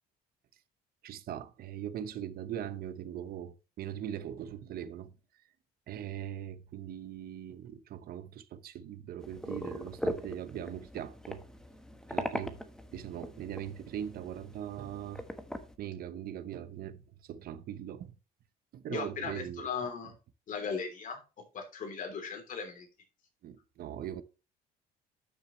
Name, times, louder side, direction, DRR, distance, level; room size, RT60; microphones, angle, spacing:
voice 1, 1.0-5.1 5.9-11.4 12.1-12.6 12.9-15.2 15.8-18.1 18.7-19.7 23.4-24.2, right 10 dB, 65° right, 0.9 m, -40 dB
sound 1, 9.2-15.8, equal, 5° left, 1.2 m, -40 dB
voice 2, 18.9-20.1 20.5-21.2 21.5-22.9, left 5 dB, 50° left, 3.2 m, -37 dB
12.0 x 6.6 x 3.1 m
cardioid pair, 110°, 17 cm